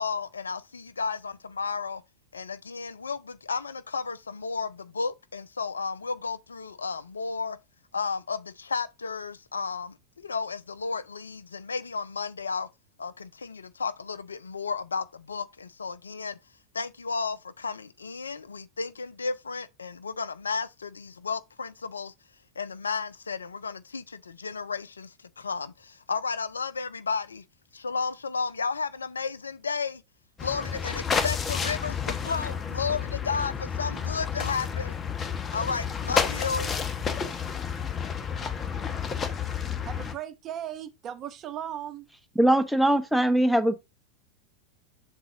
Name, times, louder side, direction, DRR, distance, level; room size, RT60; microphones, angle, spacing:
voice 1, 0.0-2.0 2.3-7.6 7.9-12.7 13.0-16.4 16.7-22.1 22.6-27.4 27.7-30.0 30.4-35.0 35.5-36.7, left 5 dB, 90° left, 0.5 m, -33 dB
sound 1, 30.4-40.1, left 6 dB, 25° left, 1.1 m, -30 dB
voice 2, 39.8-42.1, right 10 dB, 40° right, 0.9 m, -37 dB
voice 3, 42.4-43.7, right 1 dB, ahead, 1.0 m, -21 dB
6.3 x 4.0 x 3.8 m
hypercardioid pair, 90°, 0 cm